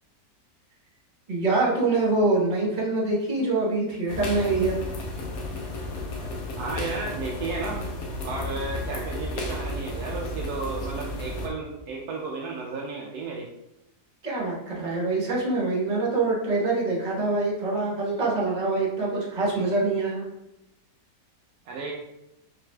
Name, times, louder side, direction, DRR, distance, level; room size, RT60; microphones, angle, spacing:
voice 1, 1.3-4.8 14.2-20.2, right 3 dB, 30° right, -5 dB, 1.2 m, -25 dB
sound 1, 4.1-11.5, left 1 dB, 65° left, 1.1 m, -33 dB
voice 2, 6.6-7.8 8.2-13.5 21.7-21.9, right 3 dB, 70° right, -1 dB, 1.0 m, -33 dB
4.9 x 3.2 x 2.3 m, 0.89 s
omnidirectional pair, 1.8 m